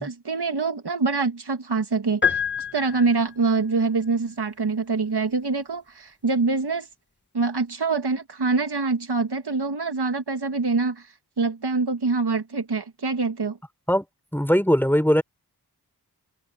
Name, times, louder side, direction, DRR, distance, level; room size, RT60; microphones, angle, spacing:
voice 1, 0.0-2.4 2.7-6.9 7.3-11.1 11.4-13.6, right 4 dB, 75° right, 1.8 m, -25 dB
sound 1, 2.2-3.5, left 7 dB, 25° left, 1.5 m, -26 dB
voice 2, 14.3-15.2, equal, 5° left, 6.3 m, -20 dB
wide cardioid pair, 50°, 40 cm